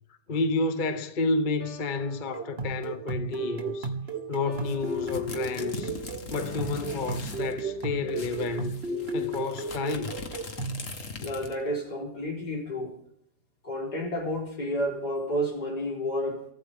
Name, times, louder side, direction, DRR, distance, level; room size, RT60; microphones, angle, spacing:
voice 1, 0.3-3.9 4.3-6.0 6.3-8.7 9.1-10.2, left 3 dB, 35° left, 1.0 m, -30 dB
sound 1, 1.6-8.6, right 2 dB, 20° right, 3.6 m, -47 dB
sound 2, 2.3-10.8, right 2 dB, 40° right, 1.6 m, -34 dB
sound 3, 4.5-7.5 7.8-7.9 8.1-11.7, left 3 dB, 50° left, 2.1 m, -41 dB
voice 2, 11.2-13.0 13.6-16.5, equal, 75° left, 5.2 m, -31 dB
24.0 x 15.5 x 3.7 m
omnidirectional pair, 1.7 m